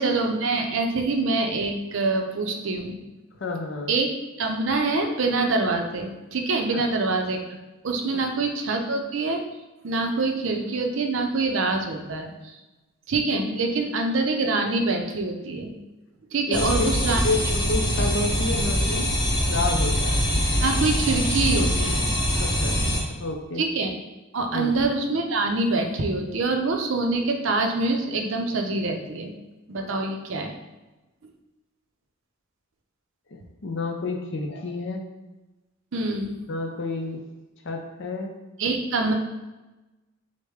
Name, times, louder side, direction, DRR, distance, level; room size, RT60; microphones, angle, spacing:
voice 1, 0.0-3.0 3.9-4.1 4.4-7.6 7.8-9.4 9.8-12.6 13.1-15.7 16.3-17.2 18.0-18.1 20.6-22.1 23.6-23.9 24.3-29.3 29.7-30.5 35.9-36.3 38.6-39.1, right 3 dB, 65° right, 4 dB, 0.5 m, -25 dB
voice 2, 3.4-4.0 6.7-6.8 16.5-16.7 17.2-17.4 17.7-19.1 19.4-20.2 22.4-23.6 24.5-24.7 33.3-35.0 36.5-37.2 37.6-38.3, left 3 dB, 60° left, 3 dB, 0.6 m, -30 dB
sound 1, 16.5-23.0, equal, 20° left, 0.8 m, -23 dB
6.3 x 2.1 x 3.5 m, 1.1 s
head